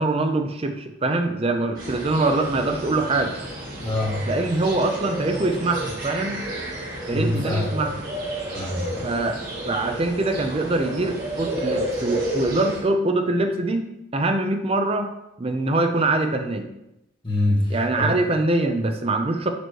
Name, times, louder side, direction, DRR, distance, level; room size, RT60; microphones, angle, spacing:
voice 1, 0.0-3.4 4.2-6.4 7.1-8.1 9.0-9.4 9.7-13.9 14.1-15.1 15.4-16.7 17.7-19.5, right 2 dB, 30° right, 6 dB, 0.5 m, -23 dB
sound 1, 1.8-12.8, right 1 dB, 65° right, 2.2 m, -31 dB
voice 2, 3.8-4.2 7.1-7.7 8.5-9.1 17.2-18.1, left 1 dB, 25° left, -4 dB, 1.4 m, -24 dB
6.7 x 3.1 x 4.6 m, 0.88 s
head